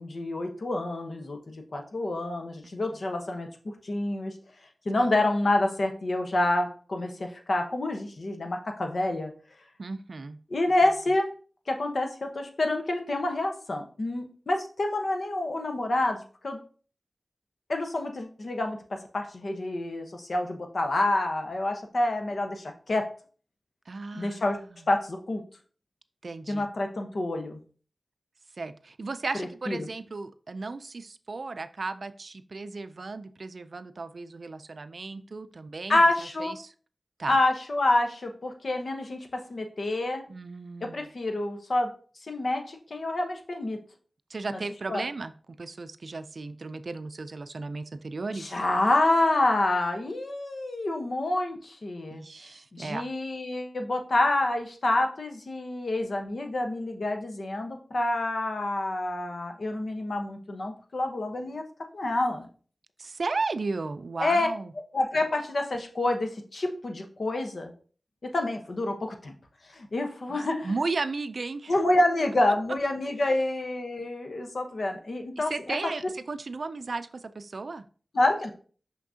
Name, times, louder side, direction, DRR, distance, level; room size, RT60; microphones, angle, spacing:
voice 1, 0.0-4.3 4.8-9.3 10.5-11.3 11.7-16.6 17.7-23.1 24.1-24.6 24.9-25.4 26.5-27.6 29.7-29.9 35.9-36.5 37.3-40.2 40.8-41.9 42.3-43.8 44.5-44.6 44.9-45.0 48.3-52.2 52.7-61.6 61.9-62.5 64.2-64.5 64.9-67.7 68.2-69.3 69.7-70.7 71.7-75.5 78.1-78.5, left 2 dB, 70° left, 4 dB, 1.0 m, -28 dB
voice 2, 9.8-10.4 23.9-24.9 26.2-26.7 28.6-36.7 37.2-37.4 40.3-41.1 44.3-45.3 45.6-48.6 52.1-53.1 63.0-64.7 70.3-70.4 70.6-71.7 75.4-77.9, right 3 dB, 70° right, 12 dB, 0.4 m, -35 dB
6.0 x 5.7 x 2.8 m, 0.41 s
wide cardioid pair, 60°, 0 cm